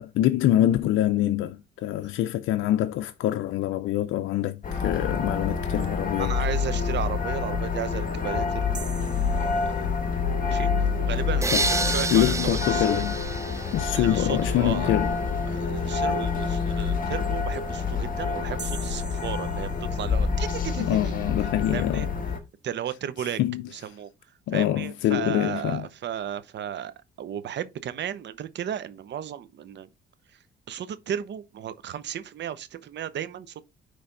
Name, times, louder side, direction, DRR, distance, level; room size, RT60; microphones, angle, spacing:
voice 1, 0.0-6.3 11.5-11.6 12.1-13.2 13.7-15.2 20.8-22.1 23.4-23.6 24.5-25.9, left 13 dB, 80° left, 0.5 m, -25 dB
sound 1, 4.6-22.4, left 5 dB, 45° left, 1.7 m, -27 dB
voice 2, 6.2-8.7 9.3-9.9 10.5-13.0 13.9-14.9 15.5-21.1 21.7-22.1 22.6-23.4 23.7-24.1 24.5-29.9 30.7-33.6, right 9 dB, 60° right, 0.8 m, -34 dB
sound 2, 8.7-10.3 18.6-20.4, right 5 dB, 40° right, 1.2 m, -43 dB
sound 3, 11.4-14.4, right 3 dB, 15° right, 0.5 m, -29 dB
9.8 x 3.4 x 3.9 m
cardioid pair, 90°, 20 cm